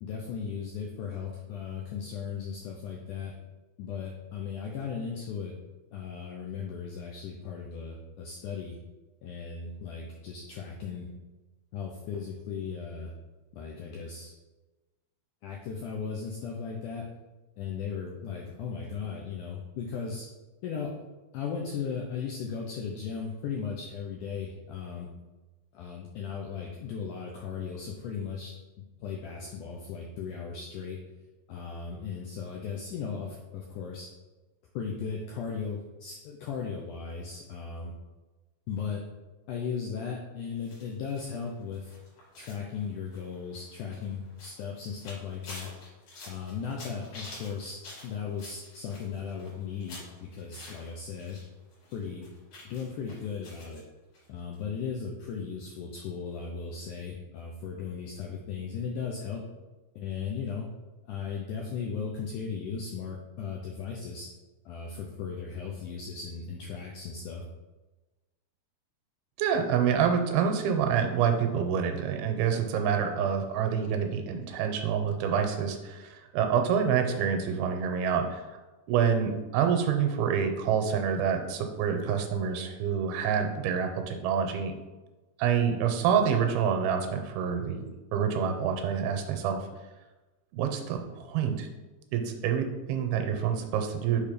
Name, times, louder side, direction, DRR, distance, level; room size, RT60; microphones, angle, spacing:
voice 1, 0.0-3.3 3.8-5.5 5.9-8.8 9.2-11.1 11.7-13.1 13.5-14.3 15.4-17.1 17.6-20.3 20.6-20.9 21.3-25.1 25.7-28.5 29.0-31.0 31.5-34.1 34.7-37.9 38.7-39.0 39.5-41.9 42.4-45.7 46.3-51.4 51.9-52.3 52.7-53.8 54.3-59.4 60.0-60.7 61.1-64.3 64.7-67.4, left 6 dB, 80° left, -1 dB, 1.8 m, -36 dB
sound 1, 40.6-51.4 51.7-53.8 54.1-54.3 54.5-54.6, left 2 dB, 50° left, 3.3 m, -49 dB
voice 2, 69.4-78.4 78.9-84.7 85.4-87.9 88.1-89.6 90.5-91.7 92.1-94.2, right 7 dB, 85° right, 5 dB, 2.5 m, -27 dB
6.5 x 3.6 x 5.0 m, 1.2 s
omnidirectional pair, 4.4 m